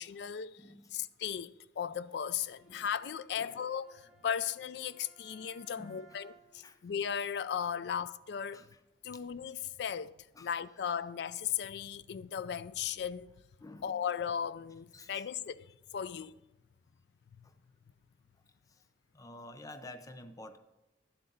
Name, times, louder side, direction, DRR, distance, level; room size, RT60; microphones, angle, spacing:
voice 1, 0.0-0.6 0.9-8.7 9.0-13.3 13.8-16.3 17.4-17.5, left 8 dB, 70° left, 0.4 m, -37 dB
voice 2, 0.6-0.9 2.7-2.9 3.4-3.6 5.3-5.4 5.8-6.2 6.6-6.8 8.5-8.7 10.4-10.5 13.6-14.0 14.9-15.3 17.4-17.5 19.1-20.6, left 1 dB, 20° left, 0.6 m, -50 dB
Bowed string instrument, 2.3-6.7, right 3 dB, ahead, 2.0 m, -62 dB
11.0 x 7.8 x 3.9 m
head